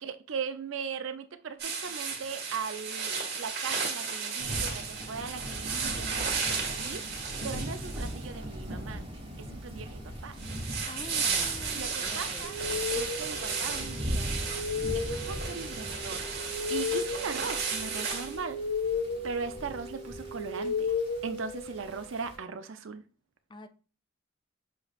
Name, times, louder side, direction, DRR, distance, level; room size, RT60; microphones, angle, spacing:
voice 1, 0.0-7.0 7.4-9.0 9.4-10.3 11.7-12.6 12.9-14.3 14.9-16.3 16.7-18.6 19.2-20.9 21.2-23.0, right 5 dB, 70° right, 0.5 m, -38 dB
sound 1, 1.6-8.4 10.4-18.4, right 5 dB, 55° right, 1.5 m, -34 dB
sound 2, 4.4-22.4, equal, 25° right, 1.1 m, -40 dB
voice 2, 9.5-9.8 10.9-12.5 23.5-23.7, left 2 dB, 25° left, 0.4 m, -46 dB
sound 3, 12.4-22.1, left 4 dB, 80° left, 1.3 m, -35 dB
6.4 x 3.1 x 2.4 m
head